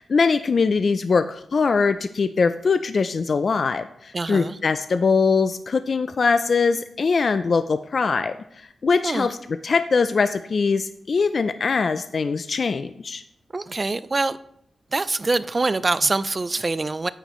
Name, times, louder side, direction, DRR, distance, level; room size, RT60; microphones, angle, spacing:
voice 1, 0.0-8.3 8.8-9.4 9.6-13.2, left 4 dB, 50° left, 10 dB, 0.3 m, -22 dB
voice 2, 4.1-4.6 9.0-9.3 13.5-14.4 14.9-17.1, right 3 dB, 30° right, 15 dB, 0.3 m, -24 dB
8.9 x 8.6 x 3.1 m, 0.74 s
wide cardioid pair, 120°, 0 cm